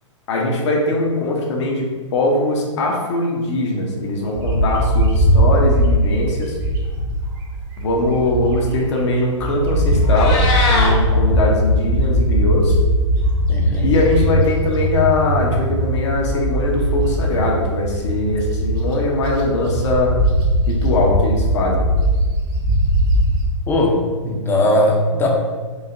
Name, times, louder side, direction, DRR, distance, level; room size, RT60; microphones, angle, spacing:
voice 1, 0.3-6.6 7.8-10.4 10.7-12.8 13.8-20.1 20.7-21.9, left 2 dB, 65° left, -1 dB, 0.9 m, -21 dB
Bird, 4.4-8.8 9.2-23.4, equal, 50° right, 1.0 m, -19 dB
Meow, 9.9-10.9, left 2 dB, 40° left, 0.9 m, -20 dB
voice 2, 13.5-13.9 23.7-25.3, left 1 dB, 15° left, 0 dB, 0.6 m, -18 dB
4.9 x 2.7 x 2.6 m, 1.4 s
hypercardioid pair, 125°, 16 cm